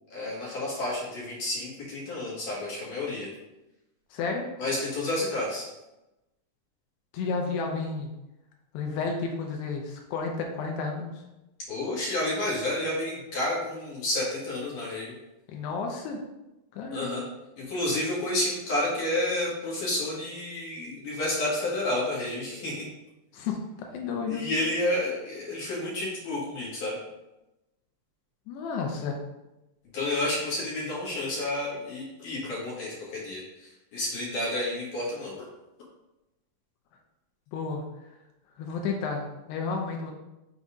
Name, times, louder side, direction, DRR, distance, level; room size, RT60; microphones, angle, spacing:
voice 1, 0.1-3.3 4.6-5.7 11.7-15.1 16.9-17.2 17.6-22.8 24.3-27.0 29.9-35.5, left 1 dB, 55° left, -6 dB, 2.7 m, -30 dB
voice 2, 4.1-4.5 7.1-8.1 8.7-11.1 15.5-16.2 16.7-17.2 23.3-24.5 28.5-29.2 37.5-37.8 38.6-40.1, left 4 dB, 80° left, 1 dB, 2.6 m, -31 dB
7.1 x 4.1 x 4.9 m, 0.96 s
omnidirectional pair, 5.3 m